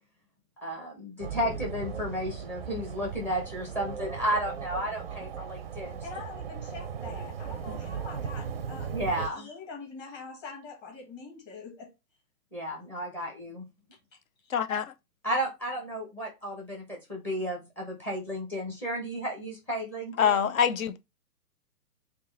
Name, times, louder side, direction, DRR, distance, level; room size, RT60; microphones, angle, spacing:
voice 1, 0.6-6.0 7.7-7.8 8.9-9.5 12.5-13.6 15.2-20.5, equal, 5° left, 0.6 m, -33 dB
sound 1, 1.2-9.3, right 7 dB, 40° right, 0.5 m, -37 dB
voice 2, 6.0-11.9, left 4 dB, 20° left, 1.5 m, -44 dB
voice 3, 14.5-14.9 20.2-21.0, left 8 dB, 60° left, 0.6 m, -25 dB
3.6 x 2.9 x 3.9 m
figure-of-eight pair, 125°, 48 cm